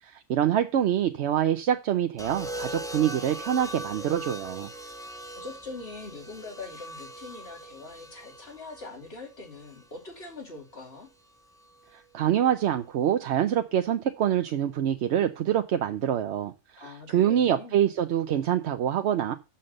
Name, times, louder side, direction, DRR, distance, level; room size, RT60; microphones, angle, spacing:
voice 1, 0.0-4.7 11.9-19.3, right 10 dB, 70° right, 0.9 m, -25 dB
sound 1, 2.2-10.3 11.6-11.9, right 1 dB, 5° left, 0.7 m, -40 dB
voice 2, 5.3-11.1 16.8-17.8, left 3 dB, 55° left, 2.9 m, -42 dB
6.6 x 5.7 x 6.5 m
omnidirectional pair, 1.2 m